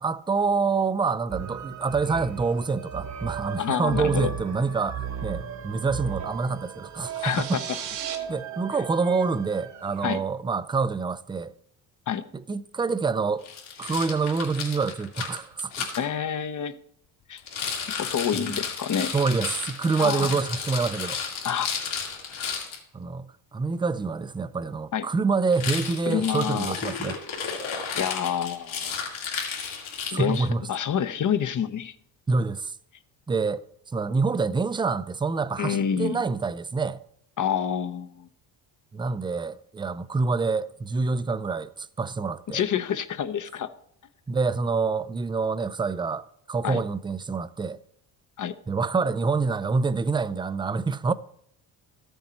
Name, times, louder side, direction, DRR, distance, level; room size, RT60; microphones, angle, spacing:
voice 1, 0.0-7.6 8.3-11.5 12.3-13.4 13.8-15.9 18.3-18.6 19.1-21.2 22.9-27.2 30.1-30.6 32.3-32.7 33.3-33.6 33.9-37.0 38.9-42.6 44.3-47.8 48.7-51.1, right 4 dB, 10° right, 0.4 m, -26 dB
sound 1, 1.3-10.2, right 7 dB, 40° right, 1.2 m, -37 dB
voice 2, 3.6-4.3 7.2-7.6 10.0-10.2 12.1-12.2 16.0-16.8 17.3-17.4 18.0-19.1 20.0-20.3 21.4-21.7 24.9-25.1 26.1-26.8 27.9-28.9 30.1-31.9 35.6-36.2 37.4-38.3 42.5-43.7 46.6-46.8 48.4-48.5, left 8 dB, 40° left, 0.8 m, -27 dB
sound 2, 7.0-8.2, right 9 dB, 80° right, 1.5 m, -36 dB
Rattle, 13.4-16.0 17.4-22.8 25.5-30.5, left 6 dB, 75° left, 2.5 m, -33 dB
13.0 x 8.0 x 4.3 m
supercardioid pair, 85°, 46 cm